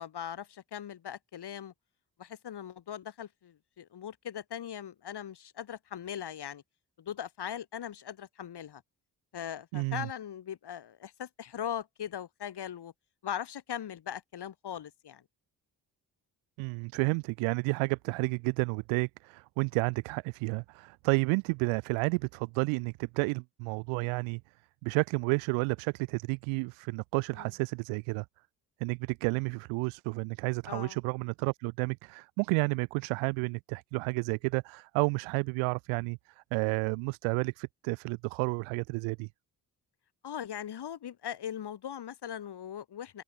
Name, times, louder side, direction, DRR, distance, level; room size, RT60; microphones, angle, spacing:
voice 1, 0.0-1.7 2.2-6.6 7.0-8.8 9.3-12.9 13.2-15.2 27.4-27.5 30.7-31.0 40.2-43.2, left 9 dB, 50° left, 3.9 m, -40 dB
voice 2, 9.7-10.1 16.6-24.4 24.8-28.3 28.8-36.2 36.5-39.3, right 31 dB, 70° right, 2.0 m, -31 dB
open air
figure-of-eight pair, 40°, 49 cm